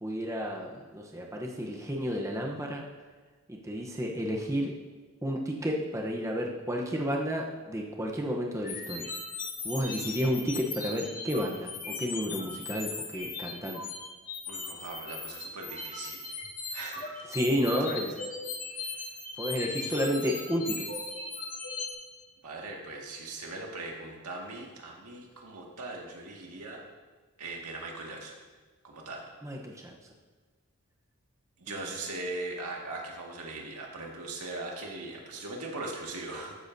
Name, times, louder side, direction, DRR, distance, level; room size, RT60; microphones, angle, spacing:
voice 1, 0.0-2.8 3.5-4.7 5.2-9.1 9.6-13.8 17.3-18.2 19.4-20.8 29.4-29.9 31.7-31.9, equal, 15° right, -1 dB, 0.9 m, -31 dB
sound 1, 8.6-21.9, left 4 dB, 40° left, 2.0 m, -38 dB
voice 2, 14.5-16.3 16.7-17.3 17.9-18.0 22.4-26.8 27.4-28.3 28.8-29.2 31.6-36.6, right 2 dB, 85° right, -1 dB, 1.9 m, -40 dB
13.5 x 9.6 x 2.7 m, 1.4 s
head